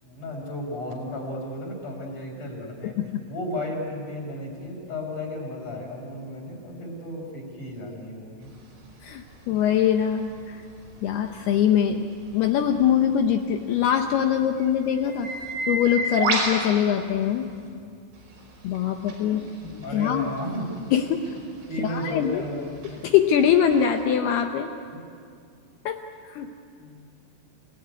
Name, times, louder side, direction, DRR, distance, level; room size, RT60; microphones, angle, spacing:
voice 1, 0.0-3.0 3.3-8.5 19.8-20.7 21.7-23.0 24.9-25.0 26.8-27.1, left 1 dB, 40° left, -1 dB, 5.4 m, -34 dB
voice 2, 2.8-3.3 9.0-10.6 11.0-12.1 12.3-15.3 15.7-17.5 18.6-20.3 20.9-21.4 21.8-22.4 23.0-24.7 25.9-26.5, left 9 dB, 80° left, 5 dB, 2.3 m, -23 dB
sound 1, 8.4-17.7 18.1-24.0, right 2 dB, 80° right, 7.6 m, -34 dB
29.0 x 19.5 x 9.6 m, 2.3 s
omnidirectional pair, 5.8 m